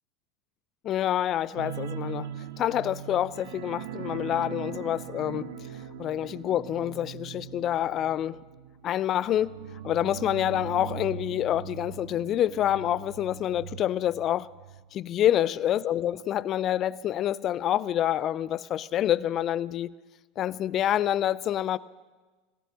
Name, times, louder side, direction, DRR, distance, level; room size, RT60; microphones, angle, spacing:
voice 1, 0.8-2.3 2.6-5.5 6.0-8.4 8.8-9.5 9.8-14.5 14.9-19.9 20.4-21.8, left 11 dB, 40° left, 0.4 m, -27 dB
sound 1, 1.6-14.8 15.1-15.3 15.7-15.8, right 9 dB, 70° right, 0.8 m, -40 dB
24.5 x 17.0 x 2.9 m
hypercardioid pair, 80°, 0 cm